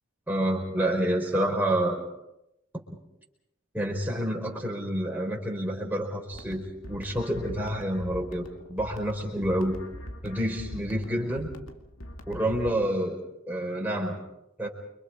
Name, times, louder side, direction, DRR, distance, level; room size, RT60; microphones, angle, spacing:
voice 1, 0.3-2.1 2.7-2.8 3.7-9.8 10.2-11.5 12.3-13.2 13.5-14.2 14.6-14.7, right 1 dB, 10° right, 0 dB, 5.0 m, -28 dB
sound 1, 6.3-12.7, equal, 85° left, 2.4 m, -43 dB
29.5 x 25.5 x 4.9 m, 0.84 s
head